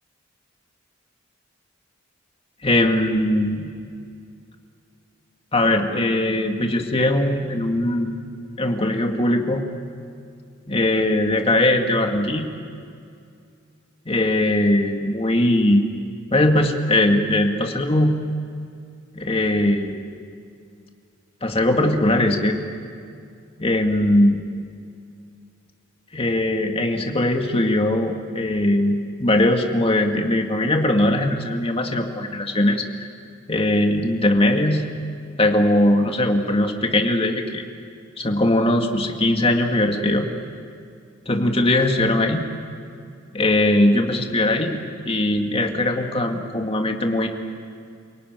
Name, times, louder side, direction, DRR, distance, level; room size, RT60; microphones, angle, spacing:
voice 1, 2.6-3.7 5.5-8.1 8.6-9.7 10.7-12.5 14.1-15.9 16.3-18.1 19.1-20.1 21.4-22.6 23.6-24.4 26.1-33.1 33.5-34.8 35.4-37.6 38.2-40.3 41.3-42.4 43.3-47.3, left 1 dB, 30° left, 3 dB, 2.2 m, -20 dB
28.5 x 18.0 x 9.5 m, 2.4 s
head